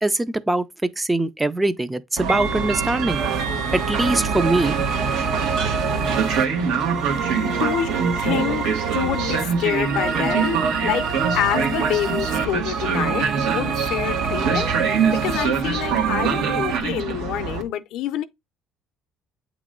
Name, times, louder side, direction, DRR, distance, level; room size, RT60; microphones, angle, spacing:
voice 1, 0.0-0.7 1.0-3.3 3.7-4.9 7.3-7.4, right 2 dB, 10° right, 0.4 m, -22 dB
Train, 2.2-17.6, right 6 dB, 80° right, 1.4 m, -25 dB
sound 1, 3.1-16.8, right 6 dB, 50° right, 0.6 m, -27 dB
voice 2, 7.1-11.1 11.3-14.7 15.1-18.2, left 11 dB, 65° left, 0.5 m, -27 dB
8.5 x 3.1 x 3.7 m
cardioid pair, 170°, 0 cm